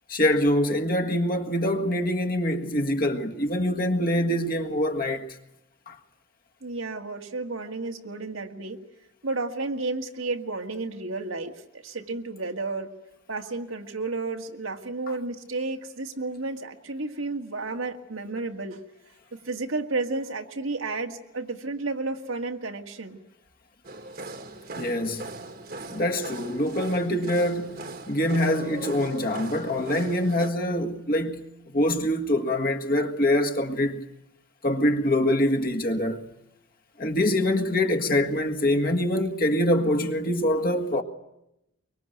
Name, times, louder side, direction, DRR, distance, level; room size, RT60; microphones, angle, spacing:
voice 1, 0.1-5.4 5.9-6.0 24.8-25.3 25.9-34.0 34.6-36.3 37.0-41.0, left 1 dB, 45° left, 1.8 m, -24 dB
voice 2, 6.6-8.8 9.2-12.9 13.3-18.8 19.3-23.2, right 3 dB, 85° right, 2.0 m, -32 dB
sound 1, 23.8-30.5, right 2 dB, 45° right, 1.6 m, -39 dB
24.0 x 23.5 x 9.2 m
head